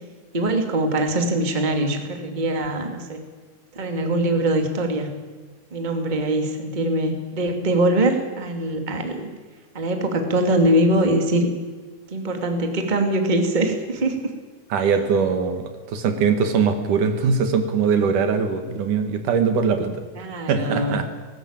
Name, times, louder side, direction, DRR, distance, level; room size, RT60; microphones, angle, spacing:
voice 1, 0.3-3.2 3.7-5.1 5.7-9.3 9.7-11.5 12.1-14.3 14.8-14.9 20.1-21.1, right 1 dB, 15° right, 4 dB, 2.1 m, -22 dB
voice 2, 14.7-19.9 20.5-21.1, right 5 dB, 70° right, 7 dB, 3.2 m, -21 dB
19.5 x 18.0 x 8.9 m, 1.4 s
omnidirectional pair, 3.8 m